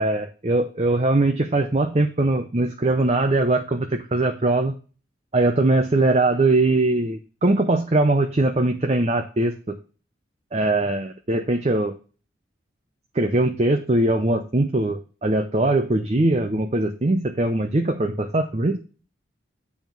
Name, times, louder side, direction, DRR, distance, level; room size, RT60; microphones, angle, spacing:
voice 1, 0.0-4.7 5.3-9.8 10.5-11.9 13.1-18.8, right 2 dB, 35° right, 5 dB, 0.6 m, -21 dB
9.2 x 3.6 x 5.9 m, 0.36 s
head